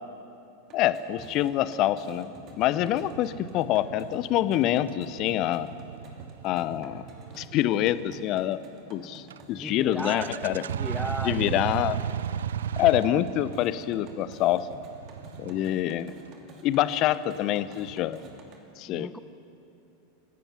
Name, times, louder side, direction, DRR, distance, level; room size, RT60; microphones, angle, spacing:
voice 1, 0.7-5.7 6.4-7.1 7.4-8.6 8.9-10.6 11.2-12.0 12.8-14.7 15.4-16.1 16.6-18.2 18.8-19.2, left 13 dB, 40° left, 16 dB, 0.8 m, -26 dB
sound 1, 0.7-18.6, right 2 dB, 40° right, 2.6 m, -51 dB
sound 2, 2.8-8.3 9.3-9.4 9.7-9.8 10.0-16.1, right 9 dB, 65° right, 0.4 m, -35 dB
voice 2, 9.5-11.6 18.9-19.2, left 1 dB, ahead, 13 dB, 0.7 m, -36 dB
29.5 x 15.5 x 5.9 m, 2.8 s
figure-of-eight pair, 85°, 0 cm